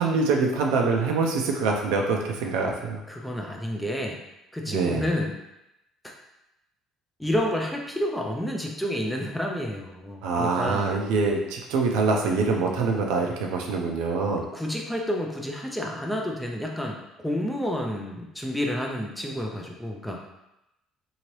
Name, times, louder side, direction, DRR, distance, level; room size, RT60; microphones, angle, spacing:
voice 1, 0.0-3.0 4.7-5.1 10.2-14.4, right 4 dB, 90° right, 1 dB, 0.5 m, -25 dB
voice 2, 3.1-4.2 4.5-5.4 7.2-10.9 14.5-20.2, left 1 dB, 5° left, 0 dB, 0.4 m, -29 dB
2.9 x 2.8 x 3.0 m, 0.90 s
cardioid pair, 135°, 0 cm